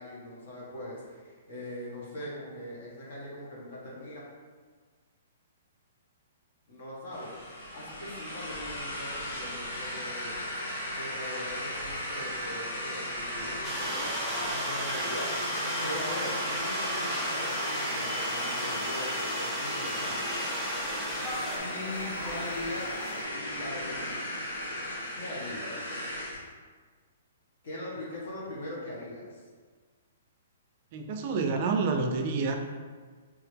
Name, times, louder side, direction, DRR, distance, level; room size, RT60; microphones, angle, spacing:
voice 1, 0.0-4.2 6.7-10.4 10.9-20.3 21.2-22.9 23.3-24.4 25.1-26.0 27.6-29.4, left 1 dB, 60° left, -5 dB, 1.4 m, -41 dB
sound 1, 7.1-26.4, left 1 dB, 80° left, 1.2 m, -36 dB
sound 2, 13.6-21.6, right 1 dB, 5° right, 0.7 m, -35 dB
sound 3, 13.8-23.2, left 1 dB, 20° left, 1.1 m, -42 dB
voice 2, 30.9-32.6, right 4 dB, 45° right, 5 dB, 0.4 m, -28 dB
3.5 x 2.9 x 3.4 m, 1.5 s
hypercardioid pair, 150°, 0 cm